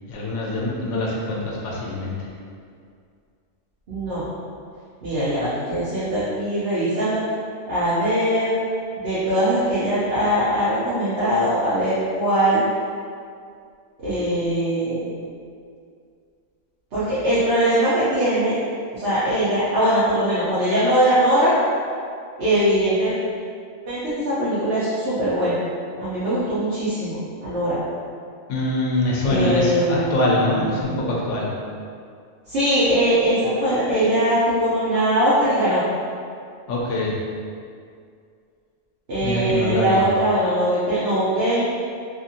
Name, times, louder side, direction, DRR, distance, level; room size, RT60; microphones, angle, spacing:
voice 1, 0.1-2.2 28.5-31.5 36.7-37.1 39.2-40.0, left 1 dB, 80° left, -4 dB, 0.9 m, -23 dB
voice 2, 3.9-4.3 5.0-7.2 7.7-8.6 9.0-12.6 14.0-15.1 16.9-18.6 18.9-21.5 22.4-23.2 23.9-25.6 26.0-27.8 29.2-31.0 32.5-35.8 39.1-41.7, right 1 dB, 60° right, -11 dB, 0.9 m, -21 dB
2.8 x 2.6 x 2.6 m, 2.3 s
omnidirectional pair, 1.2 m